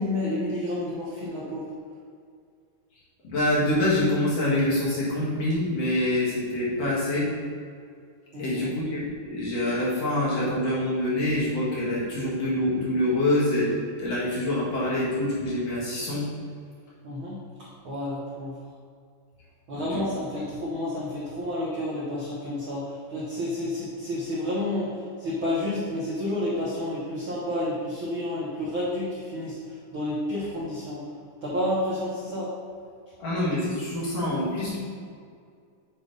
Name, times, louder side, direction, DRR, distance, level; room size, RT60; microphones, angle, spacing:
voice 1, 0.0-1.7 8.3-8.7 17.0-17.4 17.8-18.6 19.7-31.0 31.4-32.5, left 1 dB, 65° right, -6 dB, 1.2 m, -30 dB
voice 2, 3.2-7.3 8.4-16.3 19.8-20.0 33.2-34.8, left 1 dB, 55° left, -8 dB, 2.7 m, -26 dB
7.8 x 3.4 x 5.2 m, 2.2 s
omnidirectional pair, 3.9 m